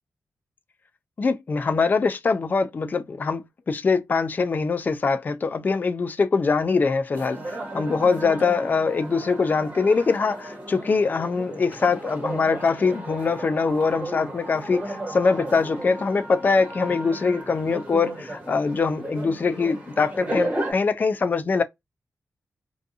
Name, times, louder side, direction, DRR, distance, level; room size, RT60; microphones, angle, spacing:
voice 1, 1.2-7.4 7.7-21.6, left 4 dB, 35° left, 0.3 m, -23 dB
sound 1, 7.1-20.7, right 1 dB, 25° right, 1.2 m, -34 dB
2.5 x 2.3 x 2.6 m
wide cardioid pair, 120°, 5 cm